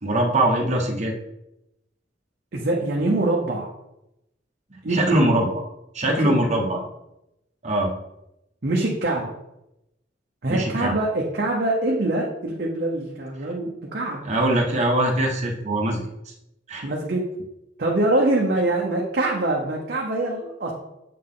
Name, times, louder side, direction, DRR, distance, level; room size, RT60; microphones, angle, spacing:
voice 1, 0.0-1.1 4.9-5.5 5.9-6.8 7.6-7.9 10.5-11.0 14.2-16.0 16.7-16.8, right 1 dB, 40° right, 0 dB, 1.1 m, -22 dB
voice 2, 2.5-3.7 4.8-5.2 6.2-6.4 6.7-6.8 8.6-9.3 10.4-14.2 16.8-17.5 17.8-20.7, right 2 dB, 55° right, -2 dB, 0.8 m, -24 dB
7.5 x 4.0 x 3.8 m, 0.88 s
head